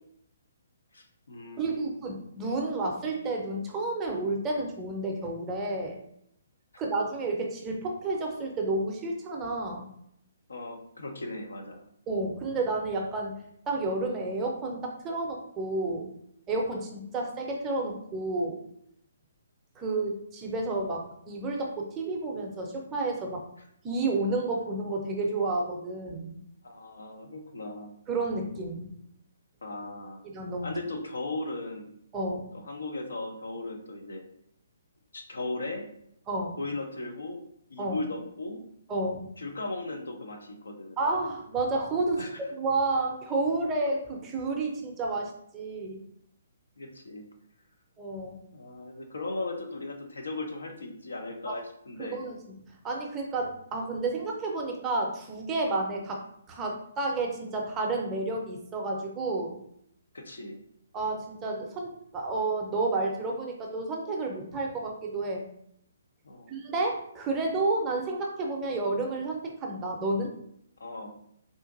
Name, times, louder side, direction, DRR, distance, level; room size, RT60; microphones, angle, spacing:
voice 1, 0.9-2.0 10.5-11.8 26.6-27.9 29.6-30.2 30.6-32.0 32.5-34.2 35.1-35.9 36.6-37.4 37.7-38.6 39.4-41.0 42.2-42.4 46.8-47.3 48.5-52.2 60.1-60.6 66.2-66.5 70.8-71.1, left 2 dB, 70° left, 3 dB, 0.6 m, -37 dB
voice 2, 1.6-6.0 6.8-9.9 12.1-16.1 16.5-18.6 19.8-23.4 23.8-26.4 28.1-28.9 30.3-30.7 32.1-32.5 36.3-36.6 37.8-38.0 38.9-39.3 41.0-42.3 42.6-46.0 48.0-48.4 51.5-51.6 52.0-52.4 52.8-56.2 56.5-59.6 60.9-65.4 66.5-70.3, right 2 dB, 20° right, 0 dB, 0.6 m, -31 dB
3.7 x 2.5 x 2.5 m, 0.70 s
figure-of-eight pair, 130°, 0 cm